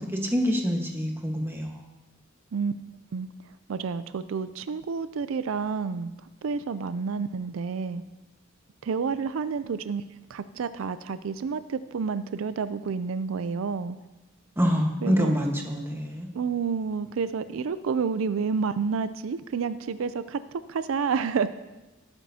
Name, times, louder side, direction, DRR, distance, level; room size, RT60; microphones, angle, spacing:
voice 1, 0.0-1.7 14.6-16.3, equal, 10° right, 1 dB, 1.3 m, -26 dB
voice 2, 3.7-6.1 6.4-8.0 8.8-10.0 10.3-14.0 15.0-15.3 16.3-21.5, right 5 dB, 80° right, 13 dB, 0.4 m, -29 dB
17.0 x 8.9 x 2.8 m, 1.1 s
head